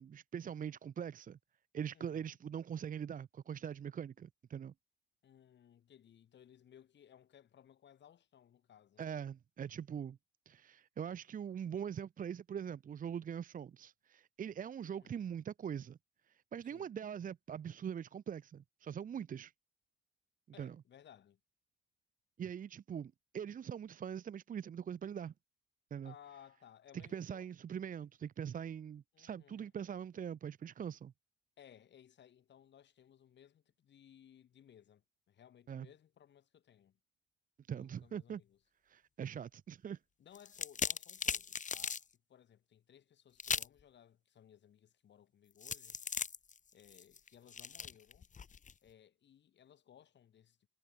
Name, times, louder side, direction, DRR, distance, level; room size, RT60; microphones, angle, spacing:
voice 1, 0.0-1.4 1.7-4.7 9.0-10.2 10.5-16.0 16.3-19.5 20.6-20.8 22.4-25.3 25.9-26.1 27.1-31.1 35.7-35.9 37.7-38.4 38.9-40.0, right 8 dB, 45° right, 0.7 m, -42 dB
voice 2, 1.9-2.4 5.2-9.0 14.8-15.3 16.6-16.9 20.5-21.4 26.0-27.5 29.1-29.7 31.6-37.0 37.7-38.6 40.2-46.0 46.7-48.3 48.8-50.7, left 9 dB, 65° left, 7.7 m, -61 dB
sound 1, 40.3-42.0 43.4-43.8 45.6-48.7, left 6 dB, 40° left, 1.5 m, -39 dB
cardioid pair, 90°, 20 cm